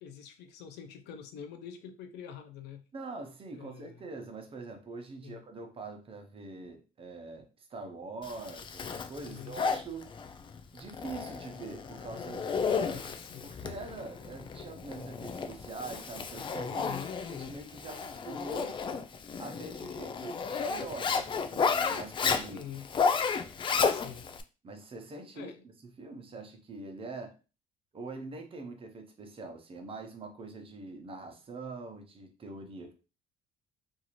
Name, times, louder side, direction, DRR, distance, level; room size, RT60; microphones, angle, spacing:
voice 1, 0.0-2.8 3.5-4.1 5.2-5.4 9.2-9.6 12.9-13.5 16.8-17.1 22.5-22.9 23.9-24.3 25.3-25.6, left 8 dB, 85° left, 0.5 m, -45 dB
voice 2, 2.9-10.1 10.7-13.1 13.4-16.9 17.3-18.8 19.4-22.7 24.6-25.5 26.0-27.4 27.9-32.9, right 3 dB, 35° right, 0.7 m, -43 dB
Zipper (clothing), 8.2-24.4, left 5 dB, 30° left, 0.3 m, -33 dB
2.6 x 2.4 x 3.0 m
cardioid pair, 110°, 17 cm